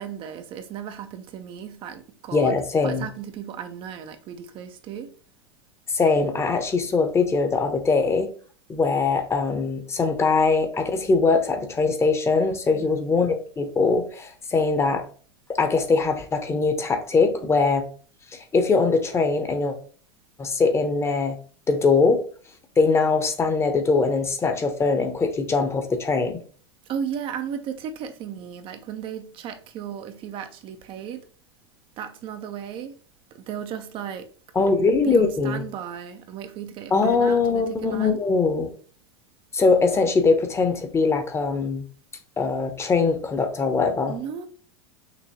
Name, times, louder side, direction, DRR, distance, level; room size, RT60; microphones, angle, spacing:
voice 1, 0.0-2.6 2.8-5.1 12.7-13.0 26.9-31.2 32.0-33.0 33.3-34.3 35.0-38.2 44.1-44.5, right 8 dB, 40° right, 0.5 m, -35 dB
voice 2, 2.3-3.1 5.9-8.3 8.7-15.0 15.5-17.8 18.3-19.7 20.4-21.4 21.7-22.2 22.8-26.4 34.5-35.6 36.9-38.7 39.5-41.8 42.4-44.2, left 4 dB, 20° left, 0.9 m, -22 dB
6.0 x 2.9 x 2.9 m
figure-of-eight pair, 90°, 14 cm